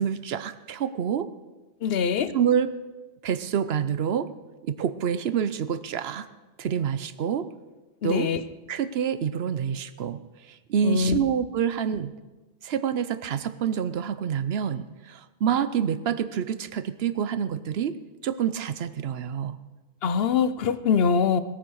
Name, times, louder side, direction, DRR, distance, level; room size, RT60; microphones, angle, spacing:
voice 1, 0.0-1.3 2.3-2.7 3.2-4.3 4.6-6.3 6.6-7.5 8.0-8.3 8.7-10.2 10.5-12.1 12.6-19.6, right 8 dB, 65° right, 14 dB, 0.9 m, -27 dB
voice 2, 1.8-2.3 8.0-8.4 10.8-11.2 20.0-21.4, left 6 dB, 60° left, 13 dB, 0.9 m, -23 dB
18.5 x 8.9 x 6.3 m, 1.2 s
omnidirectional pair, 1.2 m